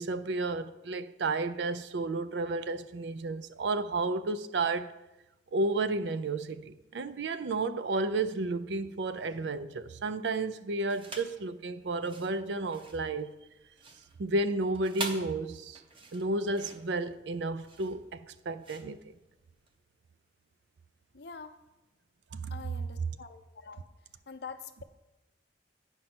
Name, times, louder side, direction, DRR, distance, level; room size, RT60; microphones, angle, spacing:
voice 1, 0.0-4.9 5.5-13.3 14.2-15.8 16.1-19.1 22.3-22.5, right 2 dB, 70° right, 0.5 m, -32 dB
sound 1, 10.9-11.4 11.9-19.8, right 3 dB, 30° right, 0.8 m, -44 dB
voice 2, 21.1-21.6 22.4-23.8 24.3-24.8, left 5 dB, 60° left, 0.6 m, -45 dB
9.0 x 5.3 x 6.0 m
head